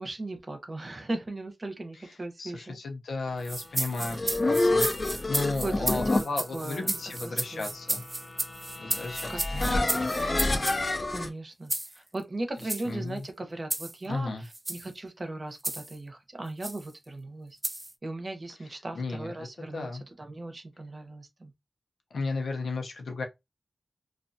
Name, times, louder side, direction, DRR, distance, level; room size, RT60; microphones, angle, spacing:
voice 1, 0.0-2.8 5.6-6.3 6.5-6.9 7.2-7.6 8.9-9.0 9.3-10.7 11.1-17.6 18.0-21.5, right 2 dB, 45° right, 0.8 m, -38 dB
voice 2, 2.4-8.0 8.8-9.3 9.6-10.1 12.8-13.2 14.0-14.4 18.9-19.5 19.7-20.0 22.1-23.2, left 3 dB, 85° left, 0.7 m, -34 dB
sound 1, 3.4-10.8 11.7-11.9 12.6-12.8 13.7-13.9 14.5-14.9 15.6-15.9 16.6-16.8 17.6-17.9, right 1 dB, 25° right, 0.3 m, -33 dB
sound 2, 3.8-11.3, left 2 dB, 40° left, 0.5 m, -29 dB
2.5 x 2.3 x 2.6 m
cardioid pair, 45°, 0 cm